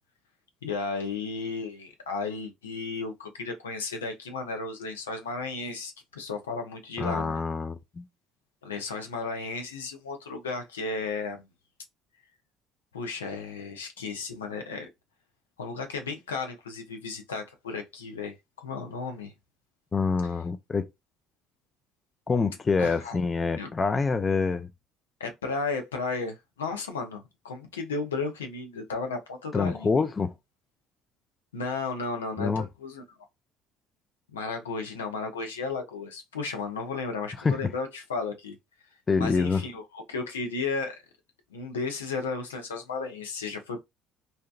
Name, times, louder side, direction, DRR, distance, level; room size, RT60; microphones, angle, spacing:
voice 1, 0.6-7.4 8.6-11.4 12.9-14.9 15.6-18.3 18.6-19.3 22.8-23.2 23.6-23.7 25.2-30.0 31.5-33.0 34.3-38.5 39.2-41.0 41.5-43.8, left 4 dB, 85° left, 0.5 m, -34 dB
voice 2, 7.0-8.1 19.9-20.9 22.3-24.7 29.5-30.3 32.4-32.7 37.4-37.6 39.1-39.6, left 4 dB, 30° left, 0.4 m, -26 dB
2.7 x 2.1 x 2.3 m
hypercardioid pair, 60°, 0 cm